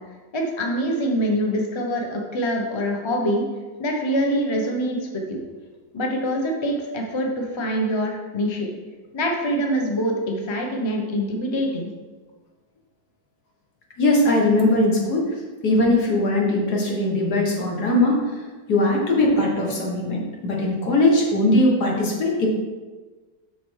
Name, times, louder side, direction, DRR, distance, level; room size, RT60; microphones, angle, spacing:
voice 1, 0.3-3.4 3.8-5.4 5.9-8.7 9.1-11.9, equal, 20° left, 0 dB, 0.9 m, -24 dB
voice 2, 14.0-15.3 15.6-18.3 18.7-22.5, left 1 dB, 70° left, -1 dB, 2.1 m, -20 dB
7.1 x 6.3 x 4.8 m, 1.3 s
omnidirectional pair, 1.8 m